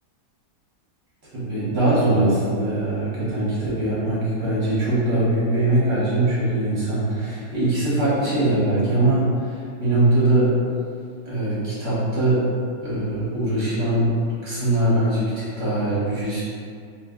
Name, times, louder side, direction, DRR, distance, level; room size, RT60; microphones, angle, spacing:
voice 1, 1.3-10.5 11.2-12.5 12.8-14.1 14.4-16.4, right 1 dB, 50° right, -10 dB, 0.9 m, -22 dB
2.6 x 2.5 x 3.5 m, 2.3 s
omnidirectional pair, 1.8 m